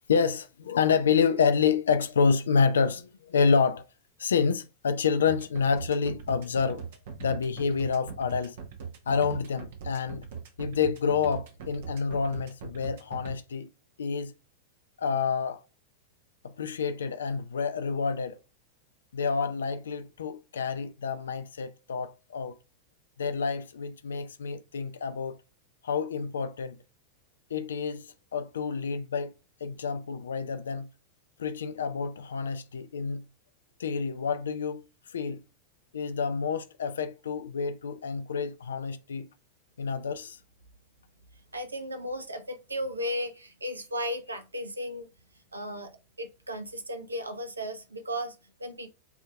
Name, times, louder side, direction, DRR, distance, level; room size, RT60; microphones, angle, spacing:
voice 1, 0.0-3.9 4.2-6.9 7.2-8.6 9.1-10.3 10.6-13.7 14.0-14.3 15.0-15.6 16.4-18.4 19.1-22.5 23.2-25.4 25.8-26.8 27.5-29.3 29.6-30.9 31.4-33.2 33.8-34.9 35.1-35.4 35.9-39.3 39.8-40.4, left 5 dB, 65° left, 0.4 m, -28 dB
sound 1, 5.3-13.3, right 6 dB, 55° right, 1.0 m, -40 dB
voice 2, 41.5-45.1 45.5-48.9, equal, 80° right, 0.7 m, -35 dB
8.0 x 2.8 x 2.2 m
figure-of-eight pair, 90°, 0 cm